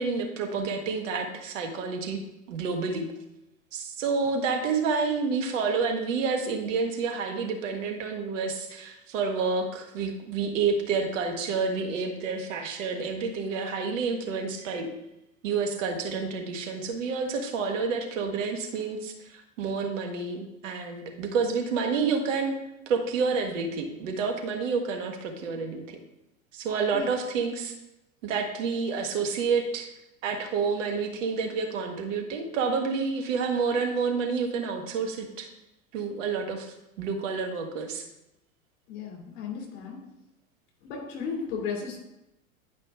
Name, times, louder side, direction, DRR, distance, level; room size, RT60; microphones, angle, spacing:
voice 1, 0.0-2.2 2.5-3.1 3.7-14.9 15.4-22.5 22.9-26.0 26.5-27.7 28.2-29.9 30.2-35.5 35.9-38.1, right 5 dB, 60° right, 3 dB, 1.6 m, -29 dB
voice 2, 38.9-40.0 40.8-42.0, left 5 dB, 50° left, 0 dB, 2.9 m, -35 dB
10.5 x 5.0 x 3.6 m, 0.90 s
figure-of-eight pair, 90°, 43 cm